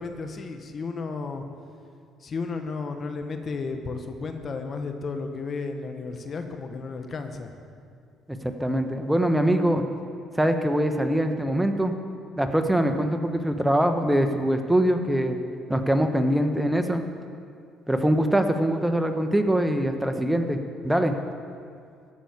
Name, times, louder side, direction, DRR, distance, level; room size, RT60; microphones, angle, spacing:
voice 1, 0.0-1.4 2.2-7.5, left 4 dB, 45° left, 6 dB, 1.3 m, -33 dB
voice 2, 8.4-9.8 10.3-11.9 12.4-15.4 15.7-17.0 17.9-21.1, right 1 dB, 10° right, 6 dB, 1.2 m, -23 dB
15.0 x 6.2 x 9.6 m, 2.3 s
supercardioid pair, 60°, 0 cm